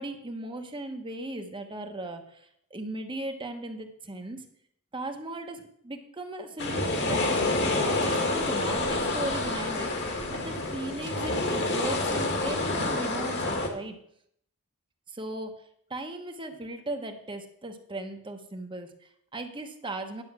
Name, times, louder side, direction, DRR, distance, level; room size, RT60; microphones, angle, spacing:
voice 1, 0.0-4.4 4.9-7.4 7.7-14.0 15.1-15.6 15.9-20.2, right 2 dB, 20° right, 5 dB, 1.0 m, -37 dB
sound 1, 6.6-13.7, left 2 dB, 50° left, 1.8 m, -28 dB
11.0 x 7.0 x 6.0 m, 0.69 s
head